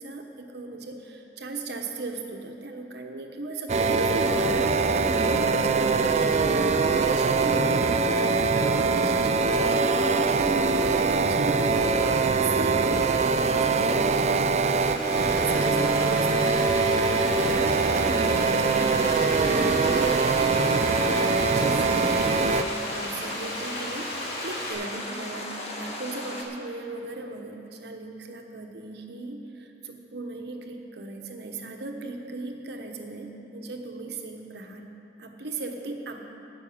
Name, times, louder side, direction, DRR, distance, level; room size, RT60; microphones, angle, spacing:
voice 1, 0.0-4.7 5.1-6.5 6.8-22.5 22.9-34.9 35.2-36.2, right 2 dB, 65° right, 3 dB, 1.1 m, -37 dB
sound 1, 3.7-22.6, right 4 dB, 40° right, 0.4 m, -23 dB
Frying (food), 14.7-24.7, left 1 dB, 60° left, 3.0 m, -36 dB
sound 2, 18.9-26.4, left 1 dB, 40° left, 1.5 m, -36 dB
12.0 x 6.2 x 8.6 m, 3.0 s
head